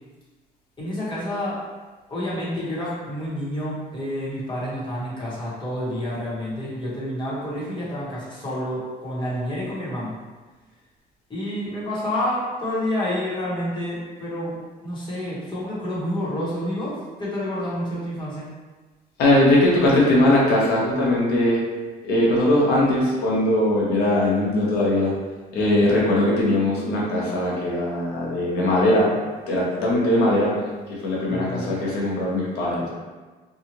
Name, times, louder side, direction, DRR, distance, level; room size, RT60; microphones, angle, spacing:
voice 1, 0.8-1.6 2.1-10.1 11.3-14.6 14.8-18.5 31.3-31.8, left 1 dB, 30° left, -8 dB, 1.2 m, -29 dB
voice 2, 19.2-21.6 22.1-25.1 25.5-29.1 29.5-30.5 31.0-32.9, left 1 dB, 75° left, -5 dB, 1.0 m, -20 dB
2.7 x 2.4 x 2.9 m, 1.3 s
cardioid pair, 110°, 17 cm